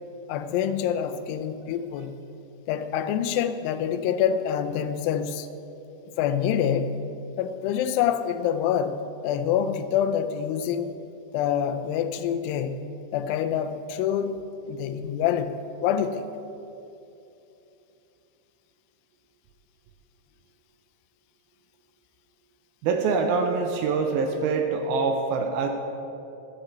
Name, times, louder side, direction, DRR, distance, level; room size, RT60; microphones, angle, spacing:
voice 1, 0.3-2.2 2.7-5.5 6.2-7.0 7.4-10.9 11.3-12.8 13.1-14.4 14.7-16.3, left 9 dB, 85° left, 2.0 m, -26 dB
voice 2, 22.8-25.7, right 4 dB, 75° right, 2.4 m, -24 dB
11.5 x 5.5 x 8.3 m
omnidirectional pair, 4.7 m